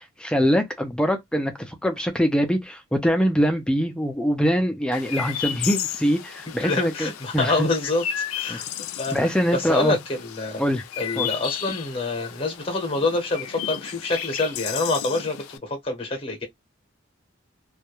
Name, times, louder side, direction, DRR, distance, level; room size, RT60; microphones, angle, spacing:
voice 1, 0.0-7.7 8.5-8.6 9.1-10.0 10.6-10.8 11.2-11.3, equal, 5° left, 0.3 m, -23 dB
Chirp tweet, 4.9-15.6, left 10 dB, 90° left, 0.4 m, -34 dB
voice 2, 6.6-8.6 9.0-9.1 9.5-10.6 11.0-16.4, left 3 dB, 25° left, 0.7 m, -26 dB
2.2 x 2.1 x 2.9 m
head